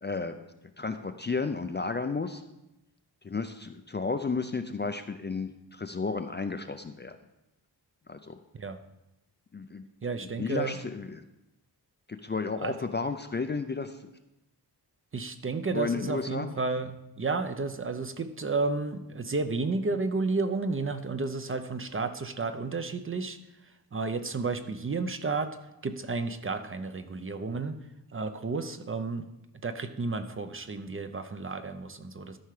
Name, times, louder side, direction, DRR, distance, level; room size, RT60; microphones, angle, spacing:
voice 1, 0.0-0.4 0.8-2.4 3.2-7.2 8.1-8.4 9.5-9.8 10.2-11.2 12.1-14.1 15.7-16.5, left 4 dB, 25° left, 8 dB, 0.4 m, -33 dB
voice 2, 10.0-10.8 12.6-12.8 15.1-23.4 23.9-25.6 25.8-27.8 28.1-29.3 29.6-32.4, right 3 dB, 30° right, 9 dB, 0.6 m, -32 dB
13.0 x 5.7 x 4.8 m, 0.91 s
wide cardioid pair, 150°, 42 cm